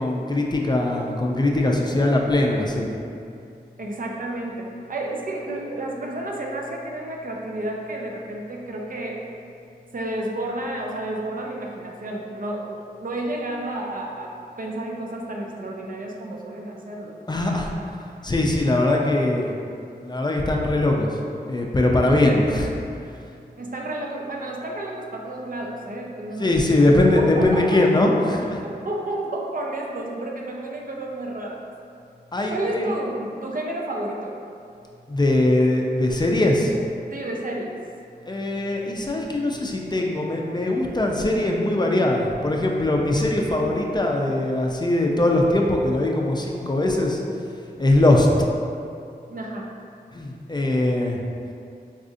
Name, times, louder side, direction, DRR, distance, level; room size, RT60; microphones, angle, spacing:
voice 1, 0.0-3.0 17.3-17.7 18.2-19.5 20.0-21.1 21.4-22.7 26.4-28.6 32.3-32.9 35.1-36.7 38.3-47.2 47.8-48.3 50.1-51.2, left 1 dB, 25° left, -1 dB, 0.4 m, -21 dB
voice 2, 3.8-9.2 9.9-17.2 23.6-27.9 28.6-31.6 32.5-34.4 37.1-37.8 49.3-49.7, right 1 dB, 55° right, -1 dB, 0.4 m, -31 dB
4.1 x 2.5 x 2.5 m, 2.5 s
wide cardioid pair, 50°, 17 cm